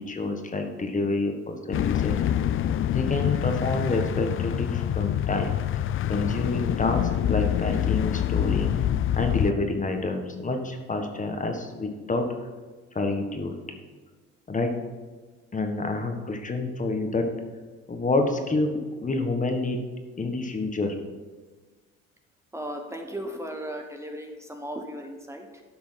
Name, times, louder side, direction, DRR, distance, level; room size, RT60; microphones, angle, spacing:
voice 1, 0.0-2.2 2.9-5.6 6.1-8.7 9.2-12.3 12.9-13.5 14.5-14.7 15.5-17.3 17.9-19.8 20.2-20.9, left 2 dB, 25° left, 5 dB, 1.4 m, -28 dB
sound 1, 1.7-9.5, left 11 dB, 45° left, 0.5 m, -26 dB
voice 2, 22.5-25.6, equal, 10° right, 3 dB, 1.2 m, -36 dB
10.5 x 6.0 x 5.8 m, 1.3 s
supercardioid pair, 85°, 29 cm